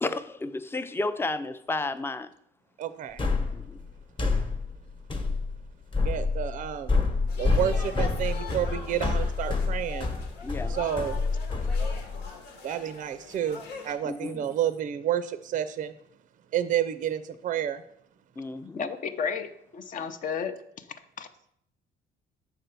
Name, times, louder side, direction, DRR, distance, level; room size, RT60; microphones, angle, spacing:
voice 1, 0.0-2.3 3.5-3.8 10.4-10.8 14.0-14.5 18.4-18.9, left 2 dB, 15° left, 0.4 m, -32 dB
voice 2, 2.8-3.2 6.0-7.0 7.4-10.1 10.7-11.2 12.6-15.9 16.5-17.8, right 10 dB, 50° right, 0.5 m, -30 dB
sound 1, 3.2-12.3, left 4 dB, 30° left, 1.0 m, -28 dB
sound 2, 7.3-13.9, left 4 dB, 85° left, 1.4 m, -42 dB
voice 3, 18.8-20.5 21.2-21.3, left 6 dB, 50° left, 0.7 m, -32 dB
6.6 x 4.5 x 6.7 m
cardioid pair, 110°, 17 cm